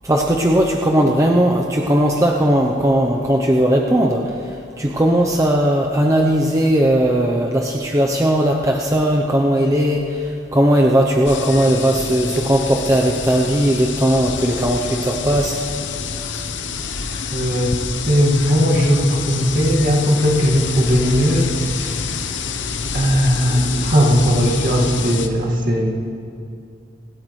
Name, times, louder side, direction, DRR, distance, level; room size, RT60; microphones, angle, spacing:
voice 1, 0.0-4.3 4.8-15.6, right 1 dB, 15° right, 0 dB, 0.7 m, -17 dB
sound 1, 11.3-25.3, left 5 dB, 75° left, 0.8 m, -27 dB
voice 2, 17.3-17.7 18.1-22.0 22.9-25.9, equal, 50° right, -1 dB, 2.0 m, -17 dB
25.5 x 13.0 x 3.2 m, 2.5 s
head